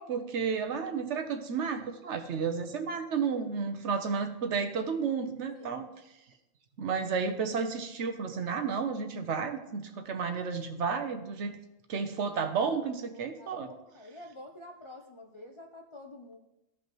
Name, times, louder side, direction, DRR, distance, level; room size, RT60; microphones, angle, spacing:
voice 1, 0.0-5.9 6.8-11.6 11.9-13.7, right 5 dB, 60° right, 8 dB, 1.0 m, -32 dB
voice 2, 13.1-16.4, left 1 dB, 40° left, 0 dB, 0.4 m, -49 dB
15.0 x 5.4 x 3.0 m, 0.92 s
omnidirectional pair, 1.4 m